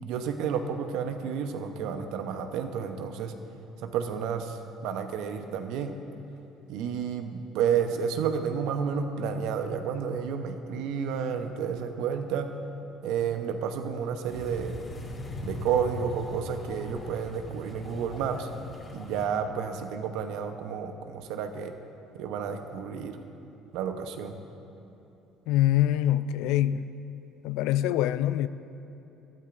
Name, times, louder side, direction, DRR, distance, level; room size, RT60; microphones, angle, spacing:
voice 1, 0.0-3.3 3.8-5.9 6.7-12.5 13.0-14.8 15.4-18.5 18.9-21.7 22.1-23.2 23.7-24.4, right 7 dB, 70° right, 0.9 m, -31 dB
sound 1, 14.3-19.3, left 2 dB, 35° left, 3.2 m, -39 dB
voice 2, 25.5-27.0 27.4-28.5, left 12 dB, 75° left, 0.3 m, -24 dB
22.5 x 13.0 x 2.6 m
hypercardioid pair, 65°, 0 cm